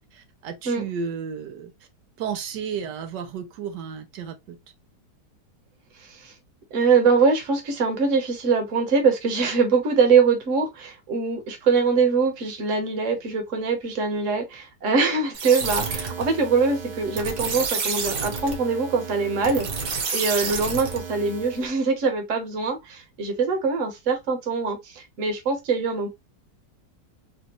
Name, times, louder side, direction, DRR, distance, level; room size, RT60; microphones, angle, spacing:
voice 1, 0.1-1.7 2.2-4.6, right 6 dB, 85° right, 1.4 m, -33 dB
voice 2, 6.0-6.3 6.7-19.7 20.1-26.1, right 4 dB, 50° right, 1.3 m, -23 dB
sound 1, 15.3-21.7, right 4 dB, 65° right, 1.5 m, -30 dB
4.2 x 2.5 x 2.9 m
omnidirectional pair, 1.8 m